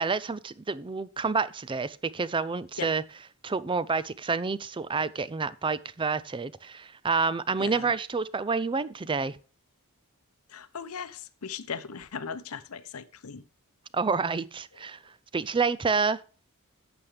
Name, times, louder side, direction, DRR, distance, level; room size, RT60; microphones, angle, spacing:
voice 1, 0.0-3.0 3.4-9.4 13.9-15.0 15.3-16.2, right 4 dB, 20° right, 0.4 m, -28 dB
voice 2, 7.6-7.9 10.5-13.4, left 6 dB, 70° left, 0.7 m, -38 dB
11.5 x 7.9 x 3.3 m
head